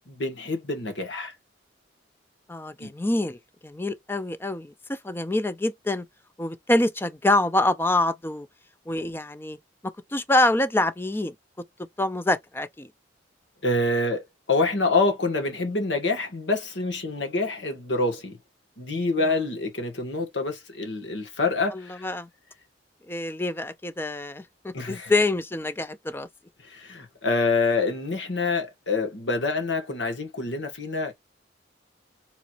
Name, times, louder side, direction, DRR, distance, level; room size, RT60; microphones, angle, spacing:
voice 1, 0.1-1.3 2.8-2.9 13.6-18.4 18.8-22.1 24.7-25.1 26.6-31.1, left 3 dB, 75° left, 1.5 m, -26 dB
voice 2, 2.5-6.0 6.4-8.5 8.9-9.6 10.1-11.3 12.0-12.9 21.7-22.3 23.1-26.3, left 2 dB, 10° left, 0.4 m, -26 dB
4.5 x 4.0 x 2.4 m
head